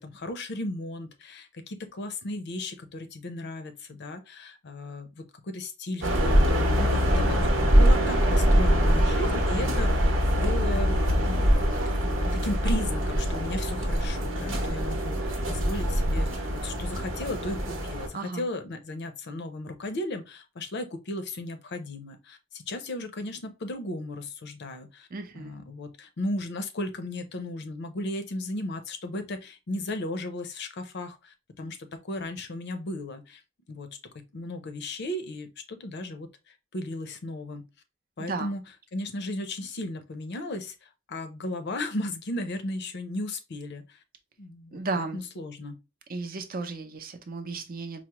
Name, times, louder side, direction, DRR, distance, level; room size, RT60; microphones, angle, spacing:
voice 1, 0.0-7.4 7.7-11.6 11.8-12.0 12.3-25.1 25.3-31.8 32.0-33.4 33.7-33.9 34.3-37.6 38.2-38.6 38.9-44.0 44.4-45.8, left 1 dB, 60° left, 0.6 m, -35 dB
sound 1, 6.0-18.1, equal, 85° right, 0.9 m, -24 dB
voice 2, 18.1-18.4 25.1-25.5 38.2-38.5 44.7-45.2 46.1-48.0, right 3 dB, 45° right, 0.6 m, -34 dB
4.6 x 2.0 x 2.9 m
head